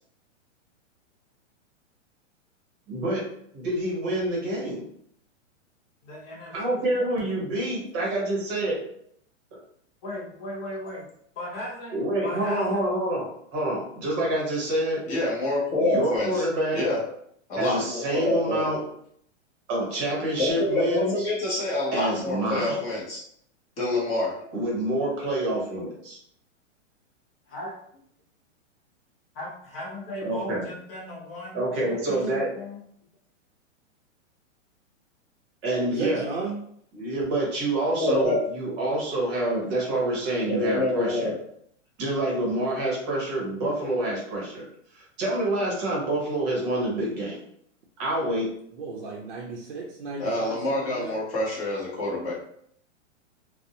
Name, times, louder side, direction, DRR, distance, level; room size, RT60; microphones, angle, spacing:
voice 1, 2.9-3.3 3.5-4.8 6.5-8.8 11.9-15.0 15.8-16.8 17.6-18.8 19.7-21.3 21.9-22.8 24.5-26.2 30.2-30.7 31.5-32.5 35.6-36.2 36.9-41.3 42.0-44.6 44.9-47.4 48.0-48.5, right 1 dB, 25° right, -3 dB, 0.8 m, -27 dB
voice 2, 6.0-7.3 10.0-11.1 11.4-12.8 25.2-25.3 27.5-27.7 29.3-32.8, left 1 dB, 50° left, -3 dB, 0.9 m, -37 dB
voice 3, 15.1-16.5 16.7-17.0 17.5-18.7 20.4-23.2 23.8-24.5 38.0-38.4 40.5-41.4 50.2-52.3, left 2 dB, 20° left, -5 dB, 0.7 m, -26 dB
voice 4, 35.9-36.6 48.7-51.1, right 3 dB, 55° right, -2 dB, 0.5 m, -34 dB
2.5 x 2.0 x 2.7 m, 0.68 s
hypercardioid pair, 150°, 38 cm